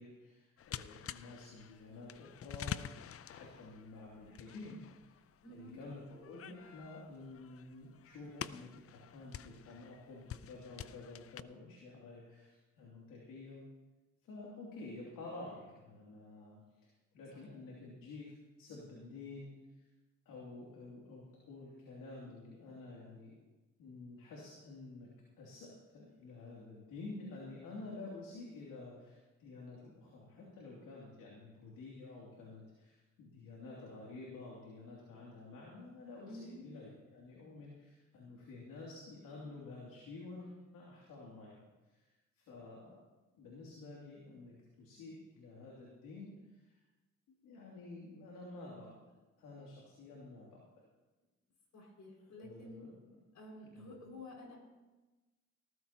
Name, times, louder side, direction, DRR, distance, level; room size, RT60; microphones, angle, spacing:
voice 1, 0.0-2.9 3.3-5.2 5.5-13.6 14.2-19.8 20.2-23.3 23.8-25.1 25.4-43.0 43.4-46.8 47.4-49.1 49.4-50.6 52.4-53.2 53.7-53.9, left 3 dB, 85° left, -4 dB, 2.9 m, -50 dB
sound 1, 0.6-11.4, left 9 dB, 45° left, 0.6 m, -48 dB
voice 2, 5.4-5.8 17.3-17.4 36.2-36.6 51.7-52.8 53.3-54.6, left 1 dB, 65° left, -1 dB, 5.8 m, -51 dB
19.0 x 14.5 x 2.9 m, 1.2 s
supercardioid pair, 60°, 31 cm